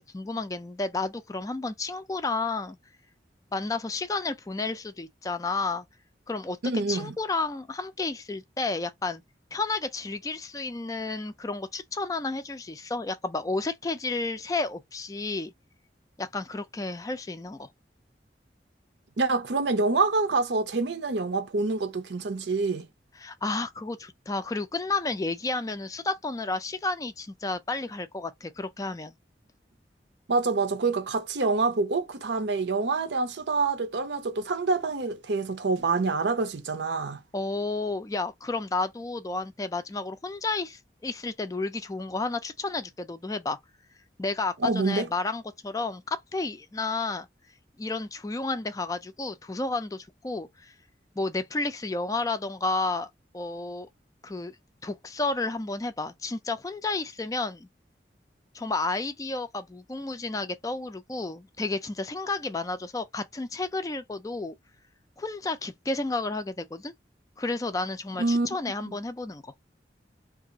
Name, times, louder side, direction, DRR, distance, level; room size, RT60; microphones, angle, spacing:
voice 1, 0.0-2.8 3.5-5.8 6.3-6.6 6.9-9.2 9.5-15.5 16.2-17.7 23.2-29.2 37.3-43.6 44.2-47.3 47.8-50.7 51.2-53.9 54.2-54.6 54.8-57.7 58.5-64.5 65.2-66.9 67.4-69.5, left 3 dB, 20° left, 0.3 m, -31 dB
voice 2, 6.6-7.1 19.2-22.8 30.3-37.2 44.6-45.1 68.2-68.5 68.9-69.0, right 3 dB, 80° right, 0.6 m, -26 dB
2.6 x 2.4 x 3.8 m
head